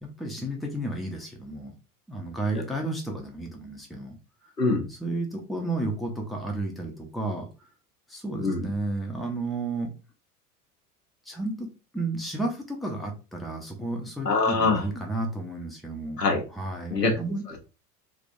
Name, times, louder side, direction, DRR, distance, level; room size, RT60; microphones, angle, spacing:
voice 1, 0.0-1.7 2.1-4.2 5.0-7.5 8.1-9.9 11.3-11.7 11.9-16.2 16.5-17.4, right 2 dB, ahead, 1 dB, 0.7 m, -32 dB
voice 2, 14.2-14.8 16.2-16.4 16.9-17.1 17.5-17.6, left 3 dB, 85° left, 1 dB, 1.0 m, -24 dB
3.3 x 3.3 x 2.5 m, 0.31 s
figure-of-eight pair, 80°, 47 cm